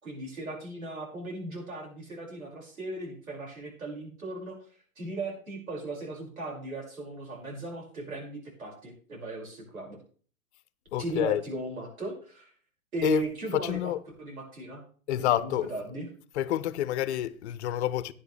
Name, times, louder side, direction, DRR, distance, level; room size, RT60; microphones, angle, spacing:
voice 1, 0.0-4.6 5.0-10.0 11.0-12.5 12.9-13.9 14.2-14.8 15.2-16.1, right 2 dB, 90° right, 5.9 m, -37 dB
voice 2, 10.9-11.4 13.0-13.2 13.5-14.0 15.1-15.7 16.3-18.1, left 12 dB, 55° left, 0.9 m, -28 dB
12.5 x 10.5 x 3.3 m
hypercardioid pair, 120°, 41 cm